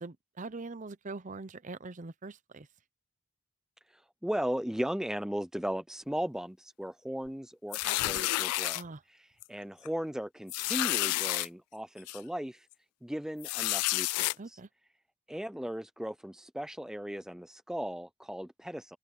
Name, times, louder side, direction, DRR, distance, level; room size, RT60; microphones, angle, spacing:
voice 1, 0.0-2.7 8.7-9.0 14.4-14.7, right 3 dB, 35° right, 0.7 m, -42 dB
voice 2, 3.9-8.8 9.1-12.7 13.0-14.6 15.3-19.0, equal, ahead, 0.4 m, -37 dB
sound 1, 7.7-8.8 9.4-9.6 9.9-10.0 10.5-11.5 12.1-12.2 13.4-14.3, left 18 dB, 90° left, 0.3 m, -30 dB
head